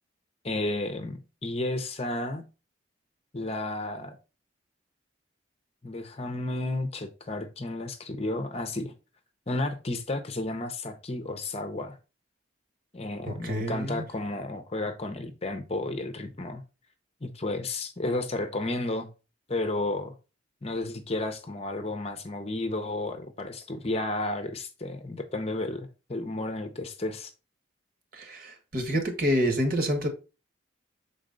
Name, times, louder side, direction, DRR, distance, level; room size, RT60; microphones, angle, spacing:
voice 1, 0.4-2.4 3.3-4.2 5.8-8.9 9.5-12.0 12.9-16.6 17.2-19.1 19.5-20.1 20.6-27.3, left 2 dB, 30° left, 0.7 m, -32 dB
voice 2, 13.3-14.0 28.1-30.1, equal, 45° right, 1.4 m, -28 dB
6.4 x 4.0 x 3.9 m
head